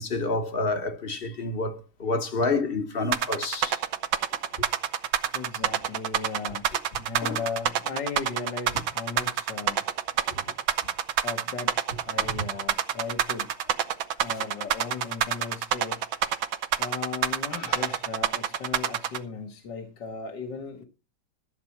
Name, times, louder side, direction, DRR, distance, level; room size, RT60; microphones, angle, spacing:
voice 1, 0.0-3.8 7.2-7.4 12.2-12.4 17.5-17.9, left 3 dB, 30° left, 1.3 m, -29 dB
sound 1, 3.1-19.2, right 9 dB, 75° right, 1.6 m, -27 dB
voice 2, 5.3-6.6 7.0-9.8 11.2-11.8 12.1-13.5 14.2-16.1 16.8-20.8, left 5 dB, 60° left, 2.1 m, -36 dB
13.0 x 7.6 x 5.9 m
omnidirectional pair, 2.2 m